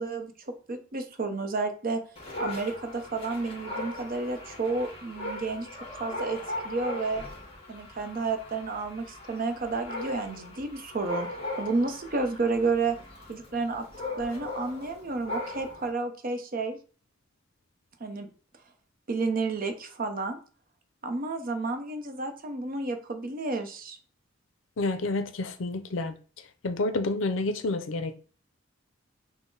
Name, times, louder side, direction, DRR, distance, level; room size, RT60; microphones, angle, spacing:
voice 1, 0.0-2.0 2.4-5.7 6.0-7.2 7.7-11.3 11.6-13.0 13.3-13.8 14.2-16.8 18.0-18.3 19.1-20.4 21.0-24.0, right 3 dB, 45° right, 0.6 m, -31 dB
Dog, 2.2-15.9, left 2 dB, 30° left, 1.4 m, -39 dB
voice 2, 24.8-26.1 26.6-28.2, left 2 dB, 70° left, 0.5 m, -29 dB
6.0 x 2.1 x 3.8 m
head